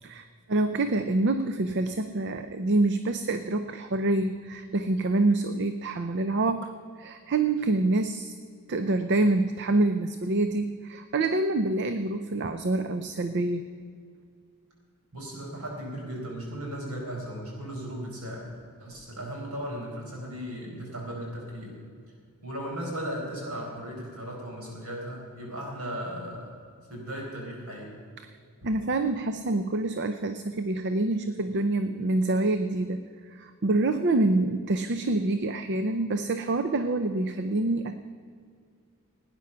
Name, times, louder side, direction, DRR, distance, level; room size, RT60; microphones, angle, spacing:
voice 1, 0.0-6.7 7.0-8.3 8.7-13.6 28.6-33.0 33.3-38.0, right 2 dB, 50° right, 9 dB, 0.5 m, -26 dB
voice 2, 15.1-18.5 18.8-21.8 22.4-26.6 26.9-27.9, equal, 80° right, -1 dB, 4.6 m, -36 dB
17.5 x 9.9 x 5.7 m, 2.2 s
head